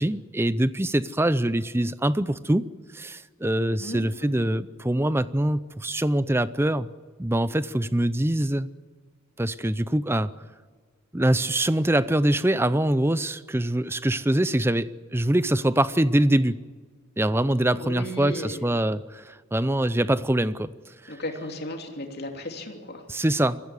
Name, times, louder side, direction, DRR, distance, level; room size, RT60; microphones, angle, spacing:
voice 1, 0.0-2.6 2.9-6.9 7.2-8.7 9.4-10.3 11.1-16.5 17.2-20.7 23.1-23.6, right 1 dB, 10° right, 15 dB, 0.5 m, -24 dB
voice 2, 3.8-4.4 17.8-18.6 21.1-23.0, left 1 dB, 45° left, 3 dB, 3.0 m, -35 dB
22.0 x 15.5 x 9.8 m, 1.6 s
head